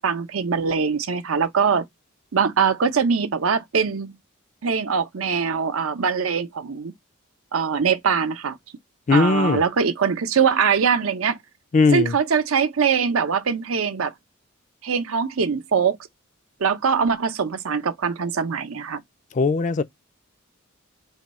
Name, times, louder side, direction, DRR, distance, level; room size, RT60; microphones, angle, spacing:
voice 1, 0.0-1.8 2.3-4.1 4.6-6.9 7.5-8.6 9.1-11.4 11.9-14.1 14.8-16.0 16.6-19.0, right 6 dB, 70° right, 0.6 m, -22 dB
voice 2, 9.1-9.6 11.7-12.1 19.3-19.8, left 4 dB, 35° left, 0.4 m, -18 dB
3.5 x 2.3 x 4.1 m
head